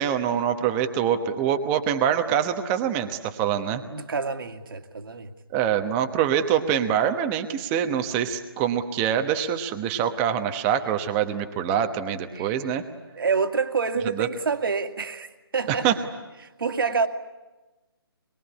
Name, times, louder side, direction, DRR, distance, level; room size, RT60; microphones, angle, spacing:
voice 1, 0.0-3.8 5.5-12.8 14.2-14.3 15.7-16.0, right 9 dB, 15° right, 7 dB, 1.1 m, -25 dB
voice 2, 3.9-5.3 12.4-12.6 13.1-15.9 16.6-17.1, right 5 dB, 60° right, 7 dB, 2.1 m, -27 dB
25.0 x 22.0 x 10.0 m, 1.1 s
hypercardioid pair, 165°, 13 cm